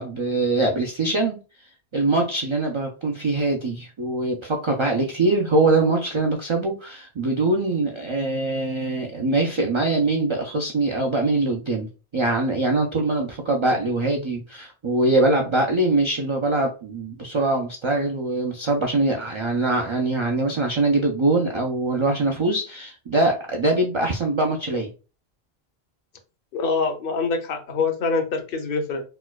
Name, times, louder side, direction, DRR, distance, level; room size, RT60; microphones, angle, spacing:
voice 1, 0.0-1.4 1.9-11.9 12.1-24.9, right 2 dB, 50° right, 0.3 m, -23 dB
voice 2, 26.5-29.0, left 4 dB, 65° left, 0.8 m, -25 dB
4.3 x 2.2 x 2.2 m
omnidirectional pair, 1.0 m